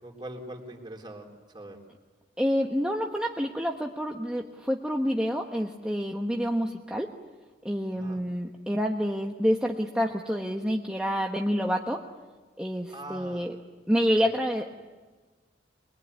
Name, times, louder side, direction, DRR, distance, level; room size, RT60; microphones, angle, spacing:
voice 1, 0.0-1.8 7.9-8.2 12.9-13.5 14.1-14.3, right 1 dB, 25° right, 2 dB, 3.7 m, -42 dB
voice 2, 2.4-7.1 7.6-12.0 12.6-13.6 13.9-14.7, equal, 5° right, 0 dB, 1.2 m, -28 dB
25.0 x 21.5 x 9.5 m, 1.3 s
head